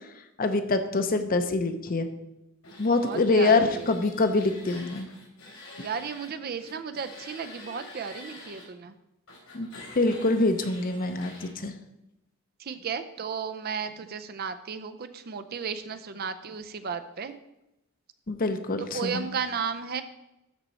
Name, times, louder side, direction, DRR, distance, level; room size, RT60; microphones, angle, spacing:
voice 1, 0.4-2.1 2.8-5.1 9.5-9.7 9.9-11.7 18.3-19.3, left 3 dB, 45° left, 8 dB, 0.7 m, -25 dB
sound 1, 2.6-6.3 6.6-8.6 9.3-11.5, left 2 dB, 85° left, 3.5 m, -47 dB
voice 2, 3.0-3.9 5.8-8.9 12.6-17.3 18.8-20.0, right 6 dB, 45° right, 9 dB, 0.5 m, -34 dB
12.5 x 4.3 x 4.1 m, 0.89 s
head